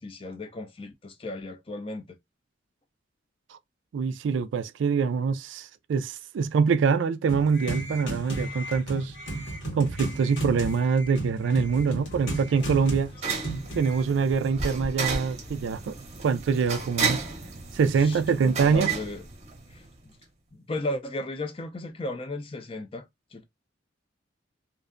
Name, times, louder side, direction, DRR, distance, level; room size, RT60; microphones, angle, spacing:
voice 1, 0.0-2.2 18.0-19.2 19.7-20.2 20.5-23.1 23.3-23.4, left 1 dB, 30° left, 0.4 m, -35 dB
voice 2, 3.9-9.1 9.7-13.1 13.8-15.9 16.2-17.2 17.7-18.9, right 5 dB, 85° right, 0.3 m, -24 dB
sound 1, 7.3-14.0, right 1 dB, 85° left, 1.3 m, -34 dB
sound 2, 11.7-20.0, right 5 dB, 35° right, 0.7 m, -33 dB
2.5 x 2.1 x 2.4 m
head